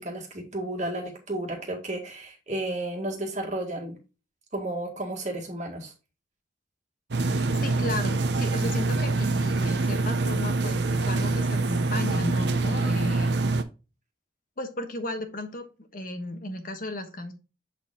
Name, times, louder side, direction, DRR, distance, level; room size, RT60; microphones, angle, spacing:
voice 1, 0.0-4.0 4.5-5.9, right 1 dB, 40° right, 2 dB, 1.7 m, -32 dB
sound 1, 7.1-13.6, right 3 dB, 65° right, 0.8 m, -25 dB
voice 2, 7.6-13.4 14.6-15.7 15.9-17.3, left 1 dB, 45° left, 7 dB, 1.3 m, -34 dB
7.6 x 4.3 x 3.7 m, 0.30 s
head